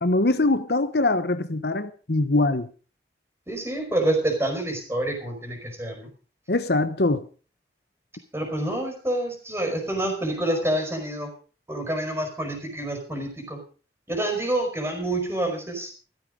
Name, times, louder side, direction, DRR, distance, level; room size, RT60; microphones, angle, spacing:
voice 1, 0.0-2.7 6.5-7.3, left 2 dB, 65° left, 11 dB, 1.1 m, -23 dB
voice 2, 3.5-6.1 8.3-11.3 11.7-13.6 14.1-15.9, right 1 dB, 15° right, 4 dB, 5.1 m, -27 dB
15.0 x 14.5 x 5.2 m, 0.38 s
head